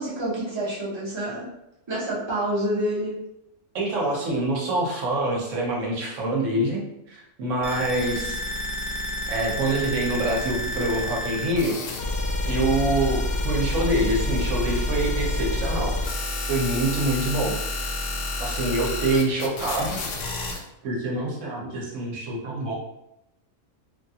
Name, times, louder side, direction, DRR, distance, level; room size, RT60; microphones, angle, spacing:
voice 1, 0.0-1.5 1.9-3.2, right 1 dB, 30° right, -6 dB, 0.6 m, -28 dB
voice 2, 3.7-6.8 7.1-8.4 9.3-11.8 12.5-15.9 16.5-17.6 18.4-20.0 20.8-22.7, right 2 dB, 75° right, -2 dB, 1.1 m, -25 dB
sound 1, 7.6-20.6, left 2 dB, 60° left, 0.7 m, -28 dB
3.1 x 2.3 x 2.7 m, 0.86 s
omnidirectional pair, 1.3 m